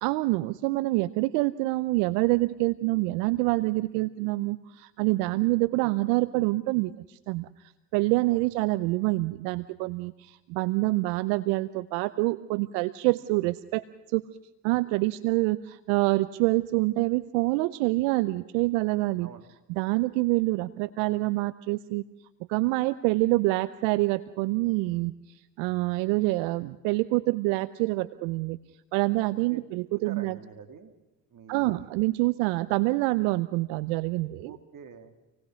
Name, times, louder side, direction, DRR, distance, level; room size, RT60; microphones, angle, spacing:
voice 1, 0.0-7.5 7.9-14.2 14.6-19.3 19.7-22.0 22.5-25.1 25.6-28.6 28.9-30.4 31.5-34.5, right 21 dB, 85° right, 17 dB, 0.7 m, -26 dB
voice 2, 29.9-30.9 31.3-31.9 34.4-35.1, right 7 dB, 55° right, 7 dB, 3.0 m, -46 dB
27.5 x 19.0 x 6.3 m, 0.99 s
hypercardioid pair, 60°, 39 cm